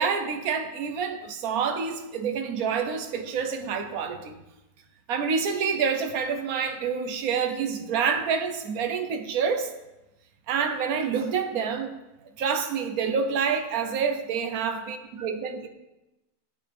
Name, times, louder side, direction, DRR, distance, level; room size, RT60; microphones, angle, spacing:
voice 1, 0.0-4.3 5.1-9.7 10.5-11.9 12.4-15.7, right 6 dB, 65° right, 6 dB, 1.4 m, -27 dB
15.0 x 9.0 x 3.5 m, 0.98 s
omnidirectional pair, 1.7 m